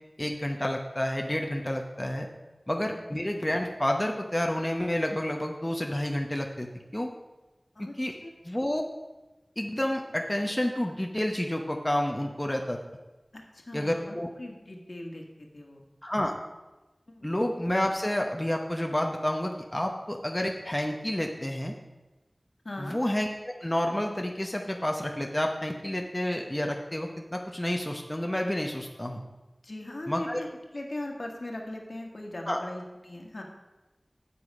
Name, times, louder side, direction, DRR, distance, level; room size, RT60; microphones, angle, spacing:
voice 1, 0.2-2.3 2.7-6.7 6.9-7.1 7.8-8.1 8.4-8.8 9.6-12.8 13.7-14.3 16.0-16.3 17.2-21.7 22.8-29.2 30.1-30.4 32.5-32.6, left 1 dB, 20° left, 2 dB, 0.9 m, -29 dB
voice 2, 13.3-15.8 17.1-17.3 22.6-23.0 29.6-33.4, left 1 dB, 65° left, 1 dB, 1.6 m, -39 dB
8.4 x 7.4 x 5.3 m, 1.1 s
wide cardioid pair, 45°, 0 cm